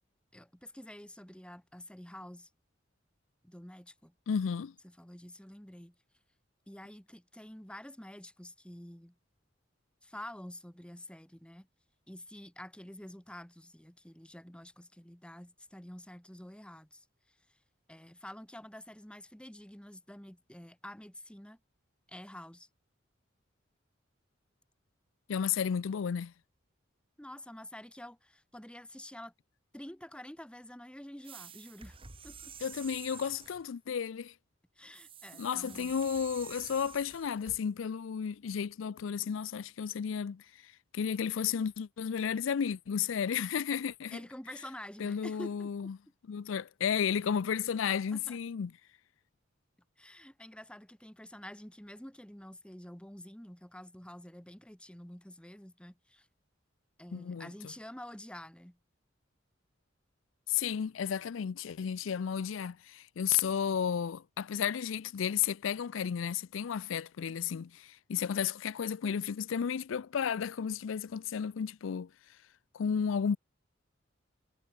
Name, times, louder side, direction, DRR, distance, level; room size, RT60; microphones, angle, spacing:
voice 1, 0.3-2.5 3.4-4.1 4.8-6.0 6.7-9.1 10.0-11.7 12.1-17.0 17.9-21.6 22.1-22.7 27.2-29.3 29.7-32.0 32.2-32.6 34.8-36.0 44.1-45.7 48.1-48.4 50.0-56.3 57.0-58.8, left 1 dB, 5° left, 1.2 m, -48 dB
voice 2, 4.3-4.7 25.3-26.3 32.6-34.3 35.4-40.4 40.9-44.2 45.0-46.0 46.3-48.7 57.1-57.7 60.5-72.1 72.7-73.4, left 7 dB, 80° left, 0.4 m, -33 dB
sound 1, 31.2-33.7 34.9-37.6, right 7 dB, 30° right, 1.8 m, -49 dB
head